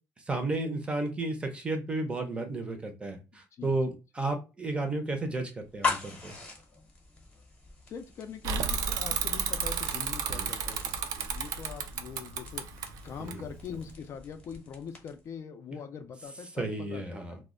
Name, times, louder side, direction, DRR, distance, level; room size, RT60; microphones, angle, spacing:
voice 1, 0.3-6.4 10.3-10.5 13.2-13.4 16.5-17.4, right 2 dB, 15° right, 5 dB, 0.5 m, -33 dB
voice 2, 3.3-4.0 7.9-10.8 11.2-17.2, left 7 dB, 50° left, 7 dB, 0.3 m, -43 dB
sound 1, 5.6-15.3, left 5 dB, 20° left, 0.8 m, -40 dB
Bicycle / Mechanisms, 8.4-13.9, right 6 dB, 80° right, 0.4 m, -32 dB
2.1 x 2.0 x 3.6 m, 0.29 s
cardioid pair, 150°, 6 cm